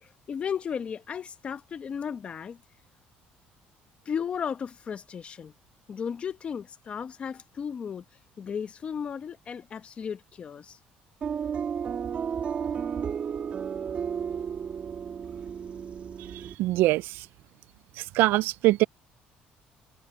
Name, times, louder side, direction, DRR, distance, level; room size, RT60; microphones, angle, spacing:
voice 1, 0.0-2.6 4.1-5.5 5.9-8.0 8.4-10.8, left 7 dB, 35° left, 1.0 m, -35 dB
sound 1, 11.2-16.6, right 7 dB, 40° right, 2.8 m, -33 dB
voice 2, 16.6-17.3 18.0-18.8, right 18 dB, 75° right, 0.4 m, -23 dB
cardioid pair, 135°, 4 cm